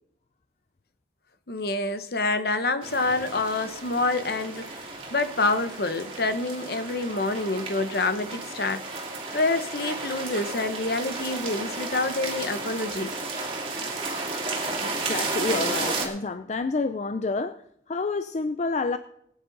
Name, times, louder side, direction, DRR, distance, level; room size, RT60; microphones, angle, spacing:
voice 1, 1.5-8.8 9.3-13.1, left 3 dB, 55° left, 10 dB, 0.9 m, -27 dB
sound 1, 2.8-16.1, right 3 dB, 30° right, 2.6 m, -33 dB
voice 2, 14.8-17.6 17.9-19.0, left 3 dB, 40° left, 11 dB, 0.4 m, -28 dB
19.5 x 9.3 x 4.0 m, 0.75 s
head